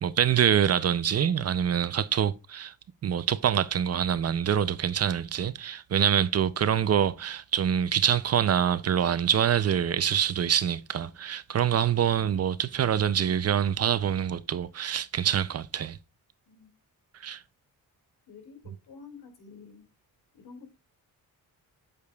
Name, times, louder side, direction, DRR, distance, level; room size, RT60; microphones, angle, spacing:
voice 1, 0.0-2.7 3.0-16.0 17.2-17.4, right 9 dB, 45° right, 0.4 m, -25 dB
voice 2, 18.3-19.9 20.3-20.8, left 5 dB, 85° left, 2.4 m, -49 dB
8.2 x 6.7 x 2.3 m
wide cardioid pair, 140°, 37 cm